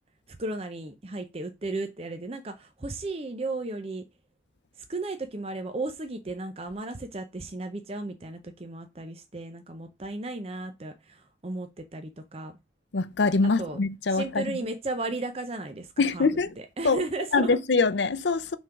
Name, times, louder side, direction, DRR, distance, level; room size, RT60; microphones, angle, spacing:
voice 1, 0.3-4.0 4.9-12.6 13.6-13.8 14.1-16.3 16.8-17.6, right 2 dB, 30° right, 0.6 m, -35 dB
voice 2, 12.9-14.6 16.0-16.5 16.8-17.0 17.3-18.6, left 4 dB, 70° left, 0.6 m, -24 dB
6.1 x 3.8 x 5.7 m
head